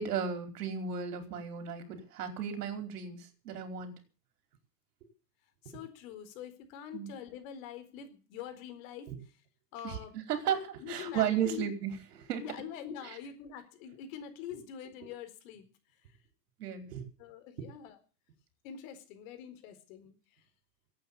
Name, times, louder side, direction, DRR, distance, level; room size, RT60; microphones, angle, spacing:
voice 1, 0.0-3.2 3.4-3.9 6.9-7.1 9.1-9.2 9.8-10.0 10.3-12.4 13.0-13.2 16.6-17.0, right 8 dB, 75° right, 6 dB, 4.9 m, -34 dB
voice 2, 5.6-9.1 9.7-10.1 10.8-11.7 12.4-15.6 16.0-16.2 17.2-18.0 18.6-20.4, left 9 dB, 55° left, 9 dB, 4.3 m, -44 dB
16.0 x 9.0 x 8.8 m, 0.38 s
supercardioid pair, 130°, 47 cm